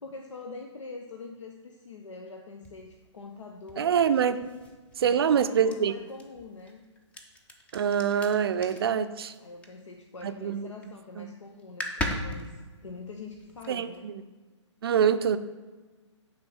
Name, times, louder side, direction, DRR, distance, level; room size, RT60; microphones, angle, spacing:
voice 1, 0.0-4.0 5.0-6.8 9.4-14.1, left 4 dB, 75° left, 3 dB, 0.7 m, -44 dB
sound 1, 2.6-10.3 10.6-11.0 11.3-11.4 11.6-14.0, left 1 dB, 10° left, 0.6 m, -39 dB
voice 2, 3.8-4.4 5.0-5.9 7.7-9.3 10.2-10.7 11.2-11.3 13.7-14.2 14.8-15.4, right 8 dB, 50° right, 11 dB, 0.5 m, -25 dB
9.6 x 3.7 x 6.2 m, 1.3 s
figure-of-eight pair, 135°, 16 cm